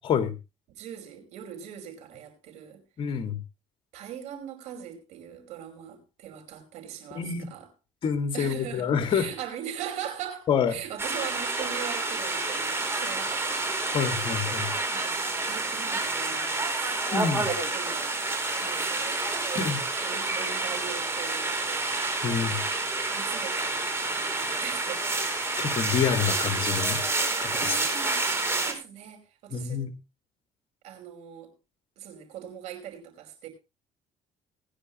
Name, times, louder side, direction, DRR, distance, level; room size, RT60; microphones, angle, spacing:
voice 1, 0.7-2.8 3.9-7.7 8.3-14.1 14.9-18.2 18.6-19.3 20.0-21.6 23.1-25.2 25.9-26.4 27.6-29.9 30.8-31.5 32.0-33.5, right 9 dB, 80° right, 5.3 m, -41 dB
voice 2, 3.0-3.4 7.2-7.5 8.0-9.3 10.5-10.8 13.8-14.7 17.1-17.5 19.5-19.8 22.2-22.6 25.6-27.0 27.4-27.8 29.5-29.9, left 7 dB, 50° left, 2.3 m, -27 dB
sound 1, 11.0-28.7, right 3 dB, 20° right, 4.8 m, -29 dB
20.0 x 10.0 x 3.1 m
cardioid pair, 115°, 12 cm